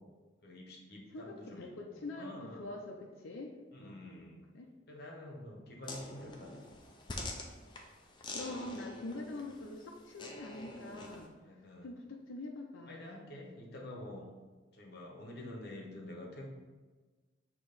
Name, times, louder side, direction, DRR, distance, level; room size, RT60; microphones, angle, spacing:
voice 1, 0.4-2.7 3.7-4.5 4.9-7.0 11.4-11.9 12.9-14.3 14.7-16.5, left 1 dB, 55° left, 0 dB, 1.1 m, -48 dB
voice 2, 1.1-4.7 8.3-11.3 11.8-13.2, left 2 dB, 80° left, 0 dB, 0.6 m, -45 dB
sound 1, 5.8-11.3, left 2 dB, 25° left, 0.5 m, -46 dB
6.4 x 3.0 x 5.0 m, 1.3 s
head